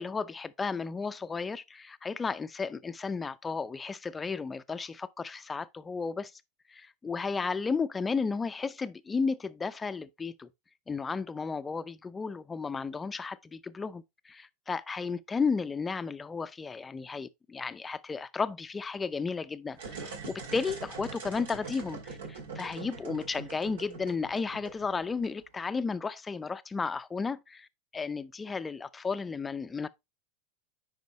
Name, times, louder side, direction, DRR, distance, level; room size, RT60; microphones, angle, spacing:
voice 1, 0.0-6.3 6.7-10.5 10.9-27.7 27.9-29.9, left 4 dB, 15° left, 0.5 m, -33 dB
sound 1, 19.7-25.6, right 4 dB, 85° right, 2.3 m, -43 dB
9.2 x 4.9 x 3.0 m
hypercardioid pair, 110°, 0 cm